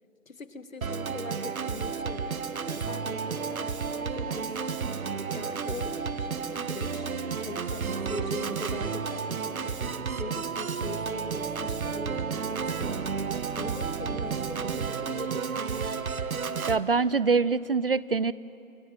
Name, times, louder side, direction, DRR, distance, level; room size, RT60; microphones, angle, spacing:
voice 1, 0.3-6.3 6.6-16.0, left 3 dB, 75° left, 11 dB, 1.5 m, -42 dB
Organ, 0.8-16.8, right 5 dB, 85° right, 1.1 m, -32 dB
sound 1, 1.9-11.6, right 1 dB, 15° right, 1.7 m, -52 dB
voice 2, 16.7-18.3, right 4 dB, 45° right, 18 dB, 0.4 m, -24 dB
28.0 x 15.5 x 7.7 m, 2.6 s
figure-of-eight pair, 155°, 41 cm